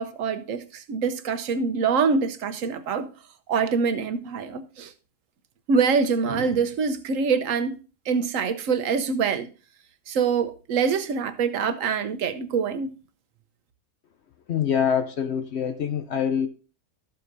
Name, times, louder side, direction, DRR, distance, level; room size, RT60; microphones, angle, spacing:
voice 1, 0.0-3.1 3.5-4.9 5.7-7.8 8.1-9.5 10.1-12.9, right 5 dB, 65° right, 1.1 m, -25 dB
voice 2, 14.5-16.5, left 8 dB, 60° left, 0.7 m, -25 dB
13.5 x 7.7 x 2.6 m
omnidirectional pair, 1.6 m